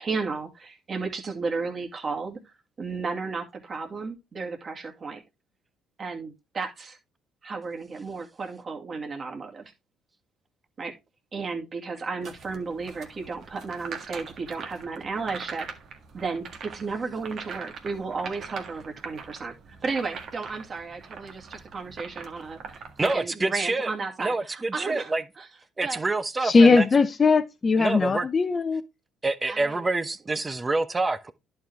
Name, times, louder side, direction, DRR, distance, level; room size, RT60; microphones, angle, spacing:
voice 1, 0.0-5.2 6.0-7.0 7.4-9.7 10.8-10.9 11.3-15.7 16.1-22.6 23.1-25.5 25.8-26.0 29.5-29.9, right 4 dB, 40° right, 2.2 m, -33 dB
sound 1, 12.2-23.1, right 5 dB, 55° right, 1.7 m, -42 dB
voice 2, 23.0-23.9 24.2-25.2 25.8-26.8 27.8-28.3 29.2-31.3, right 3 dB, 25° right, 1.0 m, -27 dB
voice 3, 26.4-28.8, left 4 dB, 35° left, 0.8 m, -19 dB
11.0 x 4.8 x 3.4 m
supercardioid pair, 65°, 0 cm